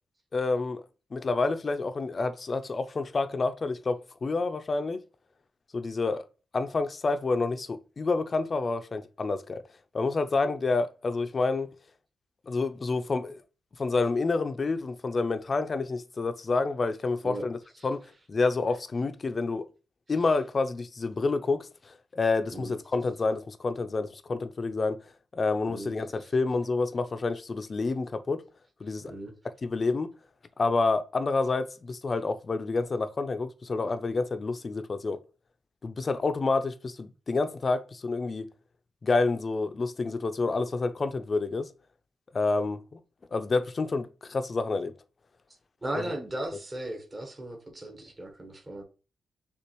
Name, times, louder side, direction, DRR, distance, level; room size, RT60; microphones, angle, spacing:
voice 1, 0.3-0.8 1.1-5.0 5.7-6.2 6.5-9.6 9.9-11.7 12.5-13.4 13.8-18.0 18.3-19.7 20.1-25.0 25.3-28.4 28.8-29.1 29.6-30.1 30.6-35.2 35.8-38.5 39.0-41.7 42.3-43.0 43.3-44.9 45.9-46.1, left 3 dB, 45° left, 0.5 m, -28 dB
voice 2, 45.8-48.8, right 1 dB, 30° right, 1.2 m, -36 dB
6.7 x 2.5 x 3.0 m
cardioid pair, 70°, 0 cm